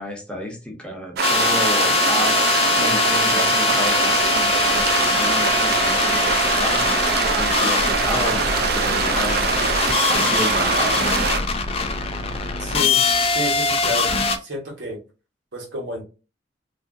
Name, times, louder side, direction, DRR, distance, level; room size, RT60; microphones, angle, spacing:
voice 1, 0.0-6.9 7.3-9.4 10.1-11.1, left 1 dB, 5° left, 0.7 m, -31 dB
sound 1, 1.2-14.4, left 4 dB, 35° left, 0.3 m, -22 dB
sound 2, 1.2-11.4, right 5 dB, 60° right, 0.3 m, -23 dB
voice 2, 12.6-13.1 13.3-14.1 14.4-15.0 15.5-16.0, equal, 80° right, 1.2 m, -30 dB
2.7 x 2.5 x 2.5 m
head